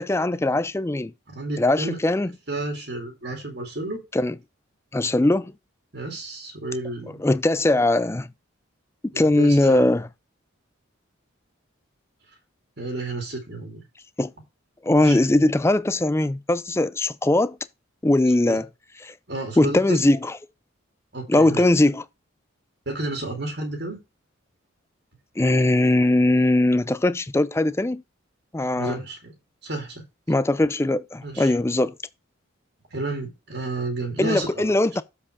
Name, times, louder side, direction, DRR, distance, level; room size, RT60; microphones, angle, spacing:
voice 1, 0.0-1.1 1.6-2.3 4.1-4.4 4.9-5.5 7.2-8.3 9.0-10.1 14.2-14.3 14.8-17.6 18.0-18.7 19.0-19.1 19.6-20.3 21.3-22.0 25.4-28.0 28.5-29.0 30.3-31.9 34.2-35.0, left 2 dB, 15° left, 0.3 m, -20 dB
voice 2, 1.3-2.0 2.5-4.0 5.9-7.2 9.1-9.9 12.8-13.8 15.0-15.2 18.5-18.6 19.3-20.1 21.1-21.6 22.9-24.0 28.8-29.3 29.6-30.0 31.2-31.5 32.9-34.7, right 2 dB, 50° right, 2.4 m, -31 dB
7.5 x 4.8 x 4.7 m
head